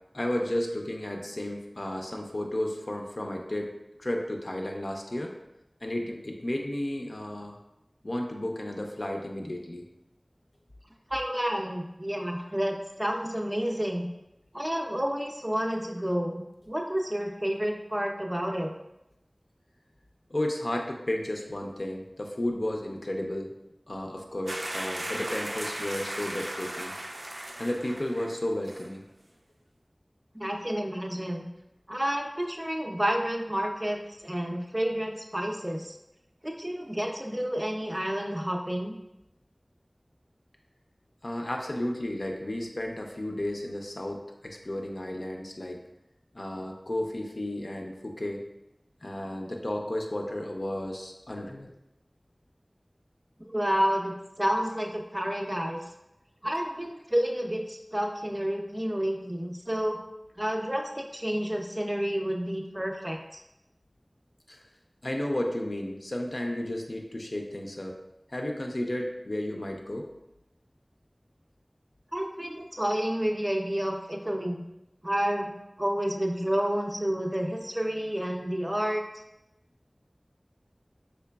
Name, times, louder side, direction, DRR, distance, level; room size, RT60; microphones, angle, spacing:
voice 1, 0.1-3.7 4.0-5.3 5.8-7.6 8.0-9.8 20.3-23.5 23.9-26.9 27.6-29.0 41.2-45.8 46.3-48.4 49.0-51.7 53.8-53.9 64.5-64.6 65.0-68.0 68.3-70.1, left 1 dB, 65° left, 1 dB, 0.4 m, -33 dB
voice 2, 11.1-14.1 14.5-16.4 16.7-18.7 30.4-31.5 31.9-35.9 36.4-38.9 53.5-55.8 56.4-60.0 60.4-63.4 72.1-74.6 75.0-79.0, equal, 20° right, 1 dB, 0.4 m, -30 dB
sound 1, 24.5-28.4 28.7-28.9, right 1 dB, 80° right, 0.4 m, -36 dB
3.8 x 3.1 x 2.2 m, 0.90 s
wide cardioid pair, 45°, 0 cm